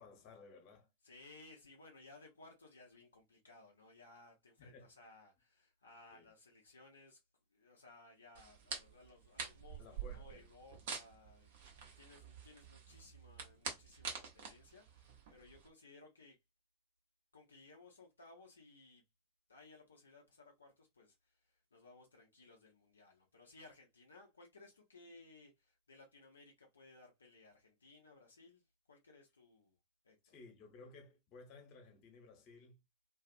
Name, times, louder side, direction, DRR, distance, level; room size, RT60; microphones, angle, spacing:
voice 1, 0.0-0.9 4.6-4.9 6.1-6.3 9.8-10.4 30.2-32.8, left 3 dB, 40° left, 1.0 m, -57 dB
voice 2, 1.0-7.2 7.5-16.4 17.3-19.0 19.5-28.6 28.9-29.8 30.0-30.3, left 3 dB, 75° left, 0.5 m, -61 dB
sound 1, 8.3-15.7, right 6 dB, 55° right, 0.7 m, -47 dB
2.4 x 2.3 x 2.5 m
figure-of-eight pair, 90°, 0 cm